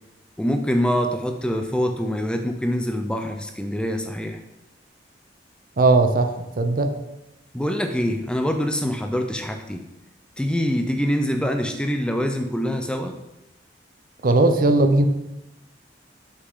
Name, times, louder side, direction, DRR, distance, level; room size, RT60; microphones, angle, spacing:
voice 1, 0.4-4.4 7.5-9.8 10.4-13.2, equal, 5° left, 5 dB, 0.5 m, -24 dB
voice 2, 5.8-6.3 6.6-6.9 14.2-15.1, right 2 dB, 50° right, 7 dB, 0.6 m, -17 dB
6.4 x 5.9 x 3.7 m, 0.92 s
head